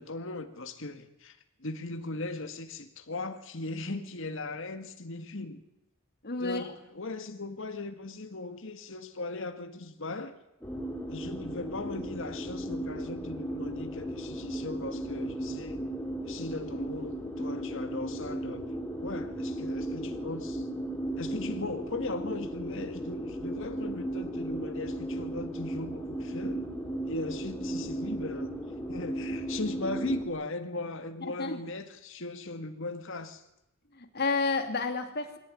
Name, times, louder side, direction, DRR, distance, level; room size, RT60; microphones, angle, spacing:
voice 1, 0.0-5.6 6.4-10.4 11.1-15.8 16.2-18.7 19.0-20.6 21.2-26.7 27.1-28.5 28.9-33.4, left 2 dB, 65° left, 1.9 m, -38 dB
voice 2, 6.2-6.6 31.4-31.6 33.9-35.4, left 3 dB, 50° left, 2.8 m, -30 dB
sound 1, 10.6-30.3, right 1 dB, 10° left, 3.3 m, -36 dB
22.5 x 17.5 x 9.8 m
head